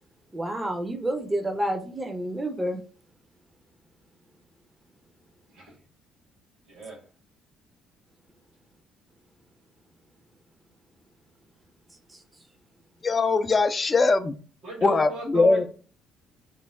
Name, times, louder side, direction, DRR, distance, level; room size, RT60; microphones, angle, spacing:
voice 1, 0.3-2.8 12.1-12.2, right 1 dB, 20° right, 0.6 m, -29 dB
voice 2, 6.6-7.1 14.6-15.7, right 3 dB, 70° right, 1.5 m, -37 dB
voice 3, 13.0-14.4 14.8-15.7, left 3 dB, 35° left, 0.4 m, -21 dB
3.1 x 2.1 x 3.4 m
hypercardioid pair, 50°, 0 cm